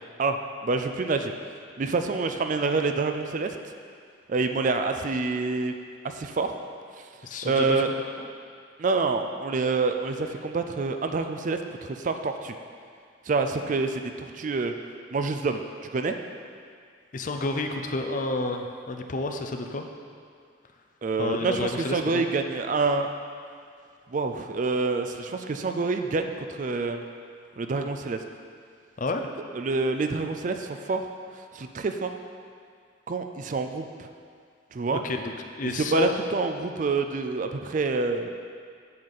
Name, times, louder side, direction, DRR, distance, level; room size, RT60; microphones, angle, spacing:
voice 1, 0.6-1.3 1.8-3.5 4.3-5.7 6.0-6.5 7.4-7.9 8.8-12.5 13.3-14.7 15.1-16.1 21.0-23.1 24.1-26.3 26.6-27.0 27.6-28.2 29.5-31.0 31.5-32.1 33.1-34.1 34.7-35.0 35.8-38.3, right 4 dB, 40° right, 6 dB, 0.4 m, -27 dB
voice 2, 7.2-8.3 17.1-19.9 21.2-22.2 29.0-29.3 34.9-35.3 35.6-36.1, left 2 dB, 40° left, 5 dB, 0.5 m, -30 dB
8.5 x 4.1 x 6.5 m, 2.2 s
head